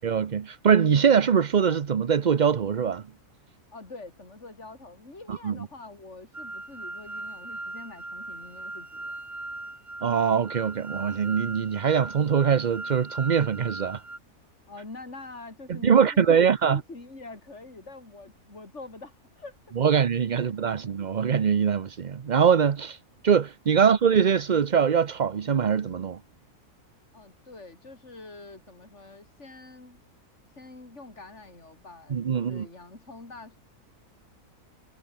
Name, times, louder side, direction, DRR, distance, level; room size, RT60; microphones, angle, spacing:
voice 1, 0.0-3.0 5.3-5.5 10.0-14.0 15.7-16.8 19.8-23.0 23.2-26.2 32.1-32.7, right 7 dB, 45° right, 0.6 m, -23 dB
voice 2, 3.7-9.1 14.7-19.6 20.8-20.9 27.1-30.0 30.6-33.6, left 3 dB, 45° left, 5.0 m, -45 dB
sound 1, 6.3-14.2, right 2 dB, 20° right, 2.2 m, -39 dB
omnidirectional pair, 1.6 m